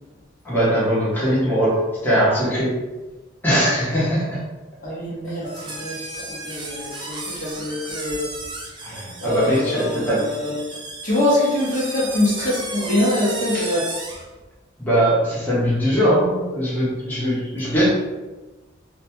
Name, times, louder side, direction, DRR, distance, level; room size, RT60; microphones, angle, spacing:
voice 1, 0.4-2.7 3.4-4.4 8.8-10.3 13.5-13.7 14.8-17.9, equal, 10° left, -9 dB, 0.8 m, -21 dB
voice 2, 4.8-8.3 9.2-10.6 11.0-13.9, left 1 dB, 40° left, -6 dB, 0.6 m, -24 dB
sound 1, 5.4-14.3, right 2 dB, 25° right, 0.4 m, -34 dB
2.6 x 2.1 x 2.8 m, 1.2 s
head